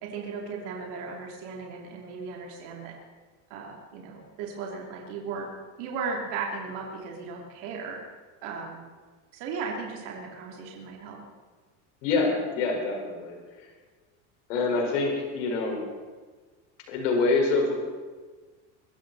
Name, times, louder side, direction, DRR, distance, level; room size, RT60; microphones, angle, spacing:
voice 1, 0.0-2.9 3.5-5.5 5.8-8.0 8.4-8.8 9.3-11.2, right 5 dB, 55° right, -1 dB, 3.2 m, -36 dB
voice 2, 12.0-13.7 14.5-15.8 16.9-17.7, left 3 dB, 85° left, 0 dB, 5.1 m, -26 dB
23.0 x 14.0 x 4.2 m, 1.4 s
cardioid pair, 170°, 36 cm